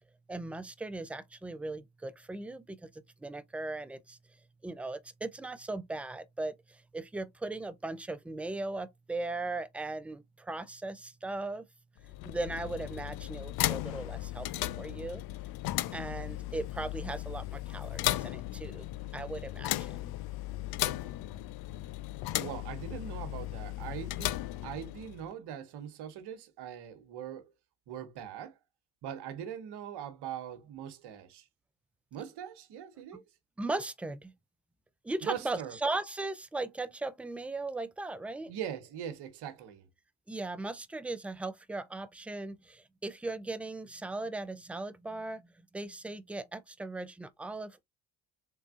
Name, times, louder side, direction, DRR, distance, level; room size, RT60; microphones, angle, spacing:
voice 1, 0.3-4.2 4.6-11.6 12.2-15.2 15.9-18.9 19.1-20.1 33.1-33.2 33.6-34.3 35.0-38.5 40.3-45.5 45.7-47.8, right 2 dB, 5° right, 0.4 m, -38 dB
sound 1, 12.0-25.3, left 16 dB, 60° left, 0.5 m, -36 dB
voice 2, 22.3-27.5 27.9-28.6 29.0-31.5 32.1-33.2 35.2-35.8 38.5-39.9, right 9 dB, 70° right, 1.1 m, -41 dB
4.0 x 3.4 x 2.4 m
supercardioid pair, 70°, 42 cm